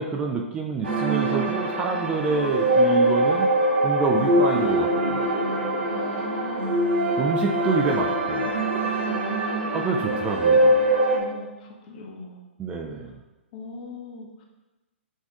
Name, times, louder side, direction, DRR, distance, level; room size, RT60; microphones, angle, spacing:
voice 1, 0.0-3.5 3.8-5.2 7.2-8.5 9.7-10.7 12.6-13.1, right 4 dB, 15° right, 1 dB, 0.4 m, -27 dB
sound 1, 0.8-11.2, right 1 dB, 80° right, 1.1 m, -23 dB
voice 2, 5.8-6.9 8.4-8.6 9.0-9.9 11.1-12.4 13.5-14.4, left 2 dB, 45° left, 0 dB, 0.9 m, -38 dB
6.3 x 3.4 x 2.4 m, 1.1 s
figure-of-eight pair, 120°, 7 cm